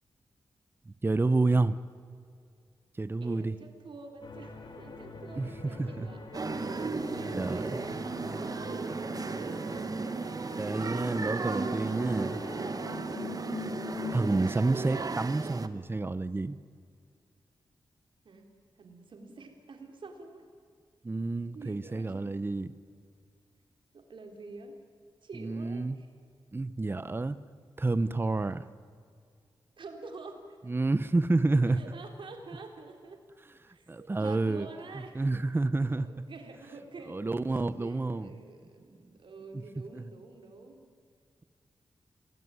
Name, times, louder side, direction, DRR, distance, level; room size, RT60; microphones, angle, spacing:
voice 1, 0.9-1.8 3.0-3.5 5.4-5.5 5.8-6.1 7.3-7.8 10.6-12.4 14.1-16.6 21.0-22.7 25.3-26.0 26.5-27.4 27.8-28.7 30.7-31.8 33.7-34.7 35.1-36.1 37.1-38.3 39.9-40.0, right 2 dB, 25° right, 13 dB, 0.9 m, -29 dB
voice 2, 3.2-6.2 6.5-9.9 18.2-18.5 18.8-20.5 21.5-22.3 23.9-24.8 25.2-26.1 29.8-30.6 31.7-33.2 33.7-35.3 35.9-37.2 37.5-40.9, right 3 dB, 70° right, 4 dB, 4.0 m, -48 dB
sound 1, 4.2-14.3, left 4 dB, 60° left, 3.3 m, -43 dB
sound 2, 6.3-15.7, right 4 dB, 45° right, 1.4 m, -35 dB
28.0 x 19.5 x 9.7 m, 2.2 s
wide cardioid pair, 85°, 9 cm